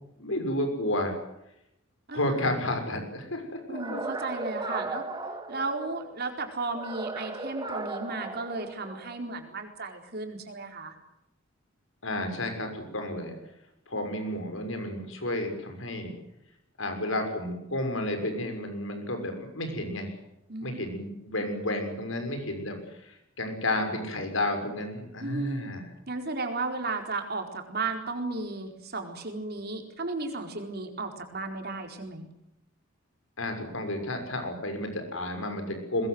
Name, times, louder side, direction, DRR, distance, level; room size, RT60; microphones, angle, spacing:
voice 1, 0.2-1.1 2.1-4.0 12.0-13.4 13.9-16.1 16.8-20.1 20.6-25.8 33.4-36.1, left 1 dB, 75° left, 6 dB, 6.4 m, -31 dB
sound 1, 3.7-6.1 6.7-9.2, right 2 dB, 20° right, 2.1 m, -36 dB
voice 2, 3.7-5.1 5.5-10.9 20.5-20.9 25.2-25.7 26.1-32.3, right 3 dB, 50° right, 4 dB, 4.5 m, -34 dB
22.0 x 21.5 x 8.0 m, 0.82 s
head